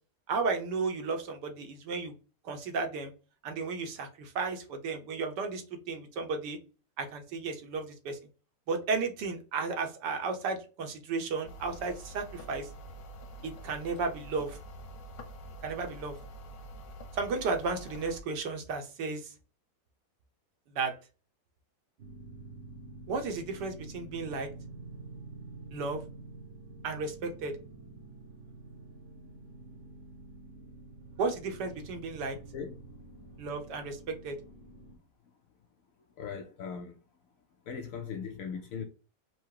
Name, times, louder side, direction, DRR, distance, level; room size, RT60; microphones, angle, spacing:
voice 1, 0.3-2.1 2.4-3.1 3.4-6.6 7.0-8.2 8.7-12.7 13.4-14.6 15.6-16.1 17.1-19.3 20.7-20.9 23.1-24.5 25.7-26.0 26.8-27.5 31.2-32.4 33.4-34.4, right 4 dB, 75° right, 1.5 m, -34 dB
sound 1, 11.4-18.2, right 1 dB, 90° left, 1.5 m, -46 dB
sound 2, 22.0-35.0, right 2 dB, 55° right, 1.0 m, -48 dB
voice 2, 36.2-36.9 37.7-38.8, left 6 dB, 70° left, 0.8 m, -39 dB
4.8 x 2.1 x 4.6 m
omnidirectional pair, 1.9 m